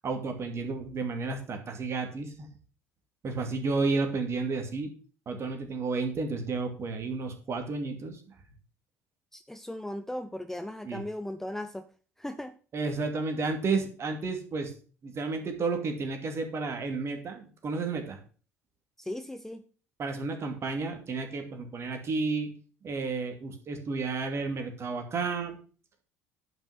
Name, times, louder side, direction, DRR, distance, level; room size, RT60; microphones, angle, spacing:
voice 1, 0.0-2.5 3.2-4.9 5.3-8.2 10.8-11.0 12.7-14.7 15.0-18.2 20.0-22.5 22.8-25.6, right 4 dB, 35° right, 5 dB, 2.7 m, -32 dB
voice 2, 9.3-11.9 12.2-12.5 19.0-19.6, left 1 dB, 5° left, 9 dB, 0.8 m, -37 dB
10.5 x 6.2 x 6.0 m, 0.38 s
figure-of-eight pair, 60°, 7 cm